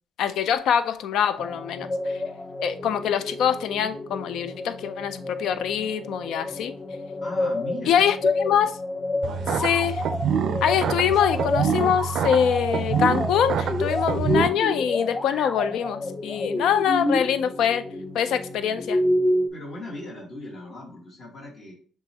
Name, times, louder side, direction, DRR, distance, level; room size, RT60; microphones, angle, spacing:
voice 1, 0.2-1.9 2.6-6.7 7.9-8.7 9.5-10.0 10.6-17.8 18.1-19.0, left 8 dB, 75° left, 0.4 m, -24 dB
sound 1, 1.4-19.5, left 2 dB, 25° left, 0.5 m, -29 dB
voice 2, 7.2-8.1 8.6-8.7 19.5-21.7, left 1 dB, 55° left, 1.6 m, -38 dB
sound 2, 9.2-14.5, right 6 dB, 65° right, 0.4 m, -26 dB
6.6 x 2.4 x 2.8 m
cardioid pair, 85°, 0 cm